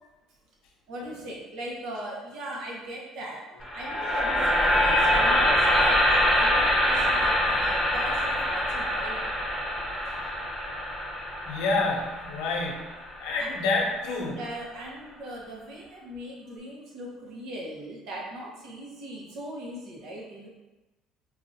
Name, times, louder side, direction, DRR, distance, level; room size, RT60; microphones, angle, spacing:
voice 1, 0.9-3.5 3.7-9.2 13.4-13.5 14.4-20.5, right 1 dB, 70° right, -2 dB, 1.1 m, -39 dB
sound 1, 3.6-13.7, left 1 dB, 10° right, 1.2 m, -25 dB
voice 2, 11.4-12.9 13.2-14.4, left 3 dB, 75° left, 0 dB, 0.8 m, -28 dB
4.7 x 2.5 x 2.7 m, 1.1 s
supercardioid pair, 100°, 0 cm